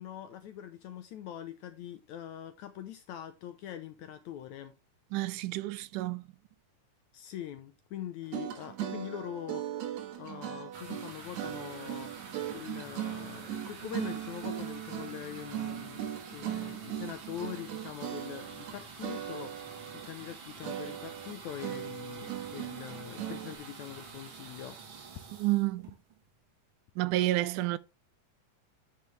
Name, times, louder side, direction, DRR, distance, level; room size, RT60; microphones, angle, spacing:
voice 1, 0.0-4.7 7.1-9.8 10.2-12.1 12.5-19.8 20.0-24.8, left 10 dB, 75° left, 1.8 m, -43 dB
voice 2, 5.1-6.2 25.4-25.9 27.0-27.8, right 17 dB, 80° right, 1.9 m, -29 dB
sound 1, 8.2-18.7 19.0-20.4 20.6-23.6, right 11 dB, 60° right, 2.3 m, -39 dB
sound 2, 10.7-26.4, right 5 dB, 45° right, 1.9 m, -48 dB
10.5 x 5.7 x 3.3 m
omnidirectional pair, 3.9 m